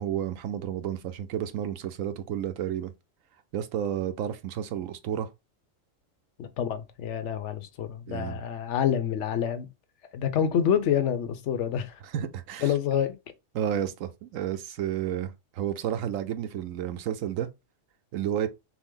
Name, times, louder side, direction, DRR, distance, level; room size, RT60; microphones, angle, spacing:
voice 1, 0.0-2.9 3.5-5.3 8.1-8.4 12.1-12.7 13.5-17.5 18.1-18.5, right 10 dB, 85° right, 1.0 m, -31 dB
voice 2, 6.4-9.7 10.1-12.0 12.6-13.1, left 9 dB, 65° left, 1.0 m, -27 dB
6.1 x 2.1 x 3.8 m
omnidirectional pair, 1.4 m